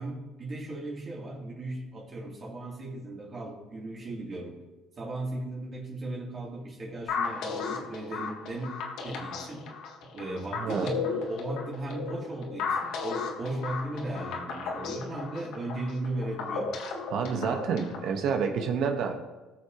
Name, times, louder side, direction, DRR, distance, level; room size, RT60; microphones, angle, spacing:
voice 1, 0.0-4.6 5.0-8.7 9.0-9.7 10.0-16.8, right 2 dB, 40° right, -3 dB, 3.0 m, -36 dB
sound 1, 7.1-18.1, left 5 dB, 75° left, 1.4 m, -35 dB
voice 2, 10.6-10.9 17.1-19.2, right 6 dB, 65° right, 4 dB, 1.2 m, -28 dB
16.5 x 6.3 x 3.0 m, 1.1 s
supercardioid pair, 85°, 0 cm